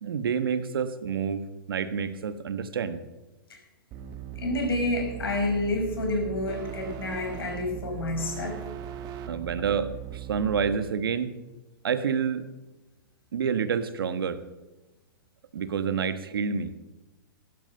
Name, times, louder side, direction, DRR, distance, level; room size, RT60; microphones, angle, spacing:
voice 1, 0.0-3.0 9.3-11.3 11.8-12.4 13.3-14.4 15.5-16.7, right 6 dB, 75° right, 11 dB, 1.4 m, -28 dB
sound 1, 3.9-10.8, right 11 dB, 35° right, 1.5 m, -39 dB
voice 2, 4.4-8.6, left 2 dB, 80° left, 2 dB, 6.0 m, -29 dB
15.5 x 12.0 x 5.7 m, 1.1 s
hypercardioid pair, 125°, 12 cm